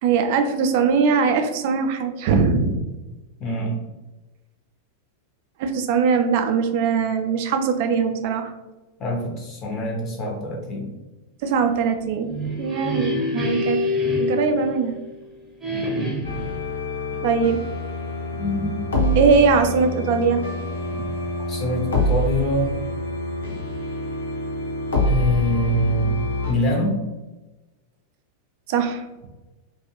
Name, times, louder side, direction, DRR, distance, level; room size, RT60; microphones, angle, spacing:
voice 1, 0.0-2.8 5.6-8.5 11.4-12.3 12.6-13.8 14.2-15.0 17.2-17.6 19.2-20.4 20.9-21.1 28.7-29.3, right 5 dB, 50° right, 6 dB, 0.4 m, -21 dB
voice 2, 3.4-3.8 9.0-10.9 15.7-16.0 18.3-18.8 21.5-22.7 25.1-27.0, equal, 30° left, 0 dB, 0.6 m, -25 dB
sound 1, 12.1-15.2 15.6-16.6, left 2 dB, 10° right, 0.7 m, -26 dB
sound 2, 16.2-26.5, left 1 dB, 70° left, 0.7 m, -26 dB
2.4 x 2.3 x 2.8 m, 1.1 s
figure-of-eight pair, 90°, 0 cm